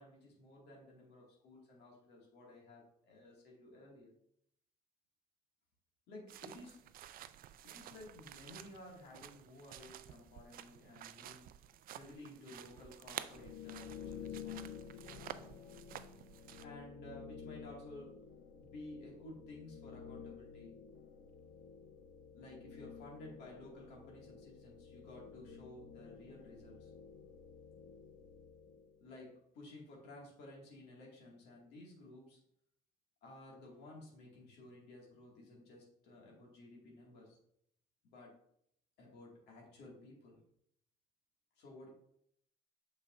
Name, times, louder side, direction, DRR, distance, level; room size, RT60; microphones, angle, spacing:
voice 1, 0.0-4.1 6.1-6.8 7.6-11.5 11.9-15.4 16.6-18.2 18.6-20.8 22.3-26.9 29.0-32.4 33.2-37.4 38.0-38.3 39.0-40.4 41.6-41.9, left 1 dB, 80° left, -2 dB, 2.1 m, -54 dB
sound 1, 6.3-16.6, right 11 dB, 60° right, 0.4 m, -51 dB
sound 2, 13.3-29.1, left 7 dB, 55° left, 0.6 m, -52 dB
6.3 x 5.8 x 2.6 m, 0.71 s
cardioid pair, 110°, 17 cm